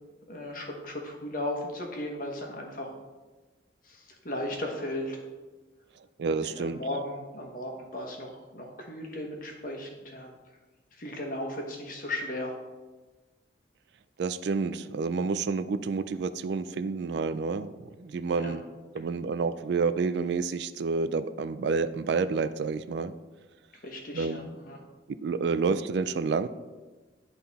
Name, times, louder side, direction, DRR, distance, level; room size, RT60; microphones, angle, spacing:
voice 1, 0.3-2.9 3.9-5.2 6.4-10.3 11.0-12.6 18.3-18.6 23.8-24.8, left 1 dB, 45° left, 1 dB, 1.2 m, -36 dB
voice 2, 6.2-6.8 14.2-17.7 18.0-18.6 18.9-23.1 24.1-24.5 25.2-26.5, right 4 dB, 60° right, 12 dB, 0.3 m, -29 dB
10.5 x 3.9 x 4.1 m, 1.2 s
head